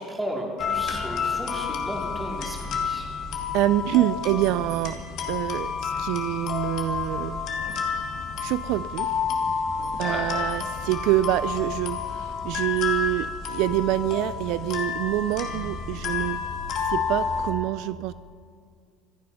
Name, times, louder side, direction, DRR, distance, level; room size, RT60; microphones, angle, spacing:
voice 1, 0.0-3.1 10.0-10.3, right 1 dB, 5° right, -1 dB, 2.9 m, -34 dB
sound 1, 0.6-17.5, left 6 dB, 50° left, 2.3 m, -30 dB
voice 2, 3.5-5.0 5.3-7.4 8.4-9.1 10.0-16.4 16.9-18.1, right 15 dB, 65° right, 15 dB, 0.3 m, -26 dB
26.0 x 9.6 x 5.7 m, 2.2 s
cardioid pair, 155°, 0 cm